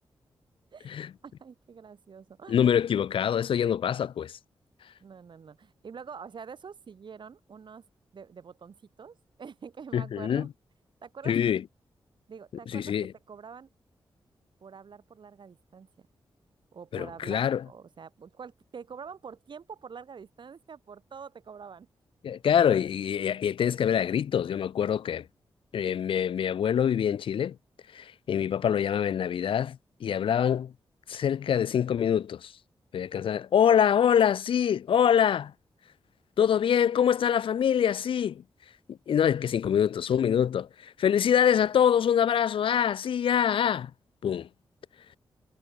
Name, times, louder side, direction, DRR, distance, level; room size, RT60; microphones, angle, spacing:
voice 1, 0.7-2.7 5.0-7.8 8.1-10.5 11.0-11.4 12.3-12.9 13.3-13.7 14.6-16.1 16.7-21.9, right 6 dB, 65° right, 4.5 m, -46 dB
voice 2, 2.5-4.4 9.9-10.5 11.3-11.6 12.7-13.1 16.9-17.6 22.2-25.3 25.7-27.6 27.9-30.7 31.1-32.5 32.9-35.5 36.4-38.4 38.9-43.9 44.2-44.5, left 8 dB, 85° left, 1.1 m, -25 dB
cardioid pair, 80°, 9 cm